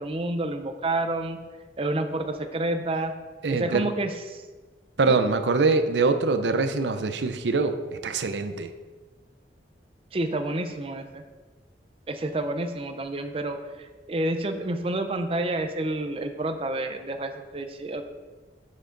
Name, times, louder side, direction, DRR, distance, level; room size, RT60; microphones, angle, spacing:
voice 1, 0.0-1.4 1.8-3.1 3.5-4.4 5.1-5.2 10.1-11.2 12.1-18.0, right 2 dB, 30° right, 7 dB, 0.5 m, -29 dB
voice 2, 3.4-3.9 5.0-8.7, right 3 dB, 85° right, 9 dB, 0.6 m, -24 dB
7.3 x 6.5 x 3.9 m, 1.3 s
head